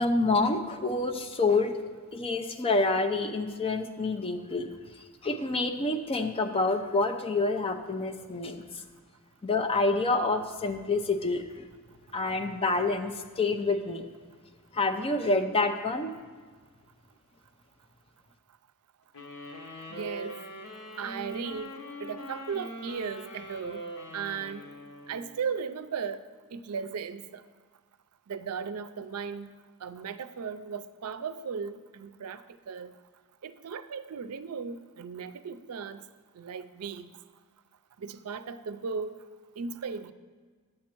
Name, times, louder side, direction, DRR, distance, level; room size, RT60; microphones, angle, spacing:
voice 1, 0.0-1.8 2.1-4.7 5.2-8.8 9.4-11.7 12.1-14.1 14.7-16.1, left 3 dB, 25° left, 7 dB, 0.5 m, -27 dB
sound 1, 19.1-25.5, equal, 85° left, 1.3 m, -42 dB
voice 2, 19.9-20.4 20.9-21.7 22.0-23.8 24.1-24.7 25.1-26.2 26.5-27.4 28.3-32.9 33.4-36.0 36.3-37.1 38.0-39.1 39.6-40.1, right 6 dB, 85° right, 12 dB, 0.5 m, -36 dB
9.5 x 7.5 x 4.5 m, 1.5 s
head